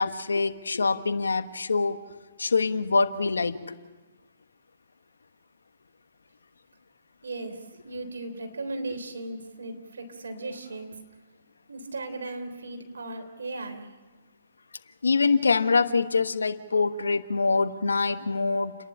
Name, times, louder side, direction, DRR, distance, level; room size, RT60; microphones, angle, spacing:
voice 1, 0.0-2.0 2.4-3.8 15.0-18.8, left 4 dB, 85° left, 10 dB, 1.3 m, -24 dB
voice 2, 7.2-7.6 7.8-10.9 11.7-13.9, right 2 dB, 80° right, 5 dB, 3.5 m, -36 dB
30.0 x 11.0 x 9.9 m, 1.2 s
hypercardioid pair, 130°, 0 cm